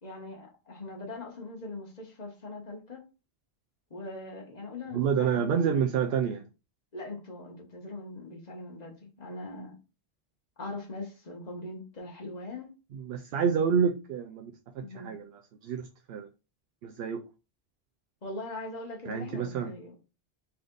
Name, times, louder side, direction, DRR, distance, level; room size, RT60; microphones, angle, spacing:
voice 1, 0.0-3.0 3.9-5.7 6.9-9.7 10.6-12.7 14.8-15.1 18.2-19.9, left 2 dB, 40° left, 1.5 m, -41 dB
voice 2, 4.9-6.5 12.9-14.5 14.8-15.3 15.6-16.3 16.8-17.2 19.1-19.7, right 7 dB, 75° right, 0.8 m, -28 dB
4.2 x 3.3 x 3.8 m
omnidirectional pair, 1.0 m